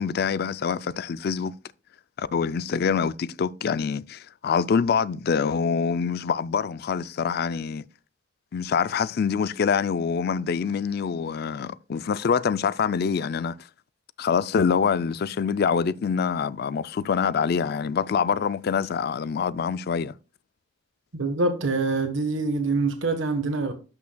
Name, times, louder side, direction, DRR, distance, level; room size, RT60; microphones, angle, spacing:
voice 1, 0.0-1.6 2.2-7.8 8.5-13.6 14.2-20.1, left 6 dB, 55° left, 0.4 m, -25 dB
voice 2, 21.1-23.7, right 3 dB, 90° right, 1.2 m, -25 dB
12.5 x 5.9 x 2.2 m
head